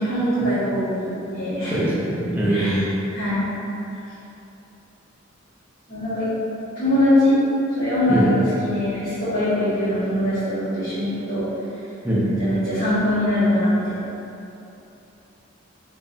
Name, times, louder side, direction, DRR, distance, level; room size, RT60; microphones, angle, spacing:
voice 1, 0.0-1.8 2.5-3.5 5.9-6.3 6.7-7.4 7.7-11.4 12.4-13.9, left 1 dB, 45° left, -17 dB, 1.3 m, -22 dB
voice 2, 1.7-2.8 8.1-8.3 12.0-12.2, right 1 dB, 10° right, -8 dB, 0.6 m, -22 dB
5.0 x 2.4 x 2.7 m, 2.9 s
head